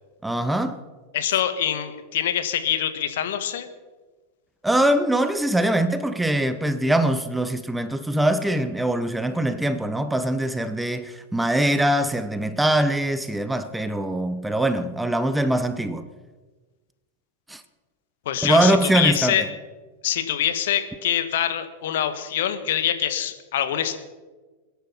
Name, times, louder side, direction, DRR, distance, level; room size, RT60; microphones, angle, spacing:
voice 1, 0.2-0.8 4.6-16.1 17.5-17.6 18.4-19.5, right 1 dB, 5° right, 0.9 m, -22 dB
voice 2, 1.1-3.7 18.2-19.4 20.0-23.9, left 10 dB, 55° left, 1.5 m, -24 dB
21.5 x 10.0 x 5.8 m
figure-of-eight pair, 90°, 0 cm